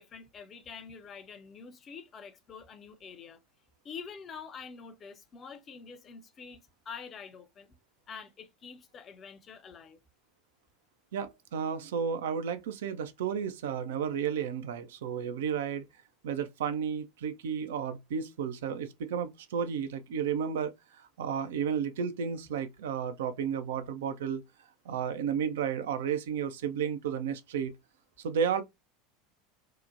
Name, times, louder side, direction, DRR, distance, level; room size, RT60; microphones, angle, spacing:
voice 1, 0.0-3.4 3.8-7.8 8.1-10.0, left 6 dB, 35° left, 0.5 m, -46 dB
voice 2, 11.1-15.9 16.2-20.7 21.0-24.4 24.9-27.7 28.2-28.6, right 7 dB, 65° right, 0.4 m, -32 dB
2.8 x 2.1 x 2.4 m
figure-of-eight pair, 75°, 0 cm